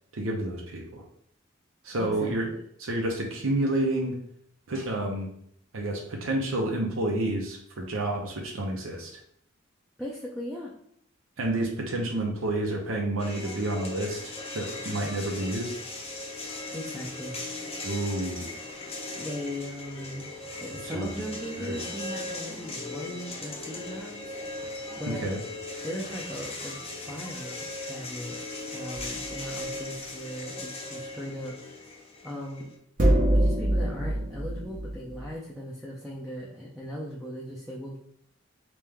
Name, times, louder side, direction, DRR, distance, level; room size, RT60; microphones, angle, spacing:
voice 1, 0.1-1.0 1.8-2.5 2.8-4.2 4.7-5.3 5.7-9.1 11.4-15.7 17.8-18.6 20.8-21.1 21.6-21.8 25.1-25.4, right 1 dB, 75° right, 1 dB, 0.7 m, -29 dB
voice 2, 2.0-2.4 10.0-10.7 16.7-17.4 19.1-20.3 20.6-24.3 25.0-25.3 25.8-26.8 27.1-28.4 28.7-31.6 32.2-32.7 33.3-38.0, equal, ahead, -6 dB, 0.5 m, -38 dB
sound 1, 13.2-32.8, left 2 dB, 30° left, 0.8 m, -38 dB
sound 2, 28.9-29.3 33.0-35.3, right 1 dB, 40° right, 0.8 m, -24 dB
3.3 x 3.0 x 3.5 m, 0.69 s
head